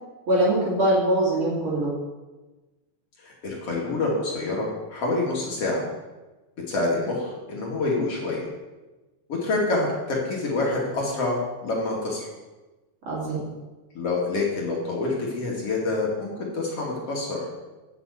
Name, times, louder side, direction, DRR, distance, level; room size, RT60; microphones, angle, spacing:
voice 1, 0.3-1.9 13.1-13.4, right 1 dB, 45° right, -6 dB, 3.5 m, -22 dB
voice 2, 3.2-5.8 6.7-8.5 9.3-12.3 13.9-17.4, left 2 dB, 55° left, -3 dB, 3.0 m, -27 dB
8.2 x 7.3 x 8.1 m, 1.2 s
omnidirectional pair, 3.4 m